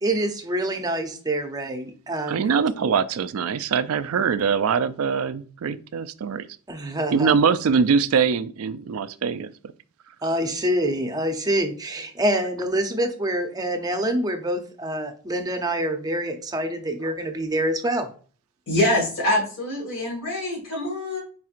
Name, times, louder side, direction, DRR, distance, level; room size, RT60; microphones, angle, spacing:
voice 1, 0.0-2.4 6.7-7.3 10.2-18.1, right 1 dB, 15° right, 5 dB, 0.6 m, -26 dB
voice 2, 2.3-6.5 7.1-9.5, right 6 dB, 70° right, 13 dB, 0.4 m, -23 dB
voice 3, 18.7-21.2, left 1 dB, 70° left, -5 dB, 1.9 m, -24 dB
4.7 x 4.3 x 2.5 m, 0.40 s
head